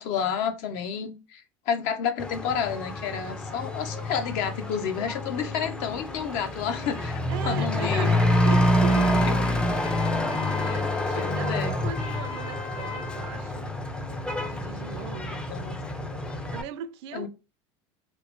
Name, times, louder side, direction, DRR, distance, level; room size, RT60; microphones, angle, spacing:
voice 1, 0.0-8.1 10.6-10.8 11.1-11.7 15.3-15.7 17.1-17.3, left 7 dB, 65° left, 0.6 m, -30 dB
Truck / Accelerating revving vroom, 2.2-16.6, left 1 dB, 5° left, 0.3 m, -27 dB
voice 2, 7.3-8.2 8.5-9.1 10.1-13.7 14.4-15.3 16.5-17.3, right 9 dB, 75° right, 0.4 m, -38 dB
Trumpet, 8.1-13.5, left 6 dB, 80° left, 1.2 m, -38 dB
2.9 x 2.0 x 2.9 m
supercardioid pair, 115°, 14 cm